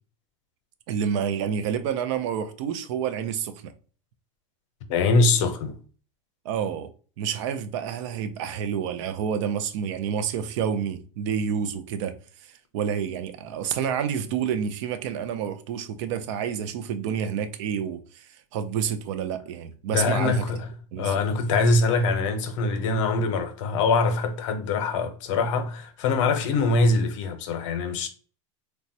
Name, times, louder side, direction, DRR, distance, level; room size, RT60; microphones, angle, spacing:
voice 1, 0.9-3.7 6.4-6.9 7.2-12.1 12.4-20.4 20.9-21.1, right 8 dB, 70° right, 0.5 m, -29 dB
voice 2, 4.9-5.8 19.9-20.7 21.0-28.1, left 3 dB, 75° left, 0.6 m, -23 dB
3.2 x 2.2 x 2.6 m
supercardioid pair, 125°, 16 cm